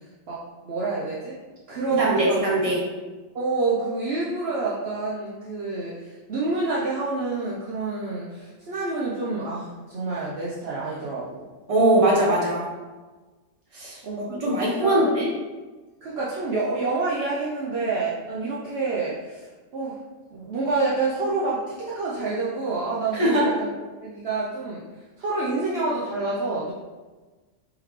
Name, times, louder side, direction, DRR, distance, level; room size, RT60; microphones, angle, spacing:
voice 1, 0.3-1.3 1.7-2.4 3.3-11.5 14.0-14.5 14.8-15.1 16.0-20.0 20.3-23.7 24.0-24.8 25.2-26.7, right 3 dB, 60° right, -6 dB, 0.8 m, -28 dB
voice 2, 1.9-2.8 11.7-12.6 13.7-14.0 14.4-15.3 23.1-23.4, right 1 dB, 30° right, -5 dB, 1.0 m, -21 dB
3.7 x 3.4 x 3.1 m, 1.3 s
omnidirectional pair, 1.3 m